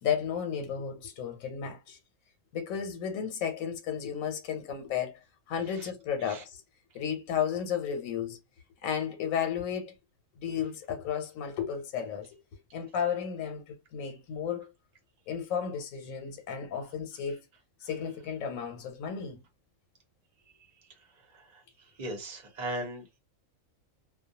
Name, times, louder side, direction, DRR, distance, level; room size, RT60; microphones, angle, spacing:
voice 1, 0.0-2.0 2.5-5.2 5.5-6.6 6.9-8.4 8.8-9.9 10.4-12.3 12.7-14.7 15.3-17.4 17.8-19.4, left 8 dB, 90° left, 1.0 m, -33 dB
voice 2, 21.1-21.6 22.0-23.2, right 1 dB, 40° right, 0.8 m, -39 dB
2.2 x 2.2 x 2.7 m
omnidirectional pair, 1.4 m